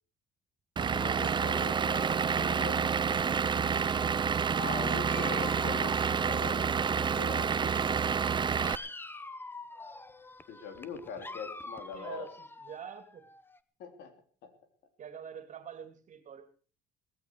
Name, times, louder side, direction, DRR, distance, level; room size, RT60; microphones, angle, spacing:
Vehicle / Engine, 0.8-8.8, right 6 dB, 25° right, 0.7 m, -29 dB
voice 1, 0.9-2.9 4.6-7.9 10.5-12.3 13.8-14.1 14.4-14.5, left 5 dB, 75° left, 7 dB, 3.3 m, -42 dB
Dog, 4.9-7.3 7.6-13.6, left 2 dB, 10° left, 0.9 m, -46 dB
voice 2, 11.9-13.3 15.0-16.5, right 8 dB, 45° right, 9 dB, 2.7 m, -46 dB
18.0 x 14.5 x 4.7 m, 0.38 s
cardioid pair, 110°, 17 cm